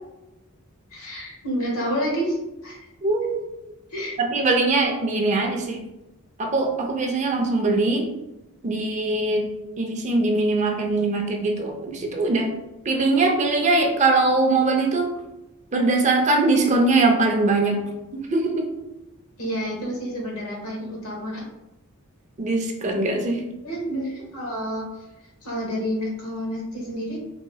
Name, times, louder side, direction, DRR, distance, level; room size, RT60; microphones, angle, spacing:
voice 1, 0.9-2.8 3.9-4.1 19.4-21.5 23.6-24.9 25.4-27.2, equal, 90° left, -2 dB, 1.2 m, -29 dB
voice 2, 3.0-3.7 4.2-5.8 6.4-8.1 8.6-9.5 9.8-12.5 12.8-15.1 15.7-17.8 18.1-18.7 22.4-23.4, right 3 dB, 35° right, 2 dB, 0.5 m, -21 dB
3.9 x 2.9 x 2.2 m, 0.96 s
head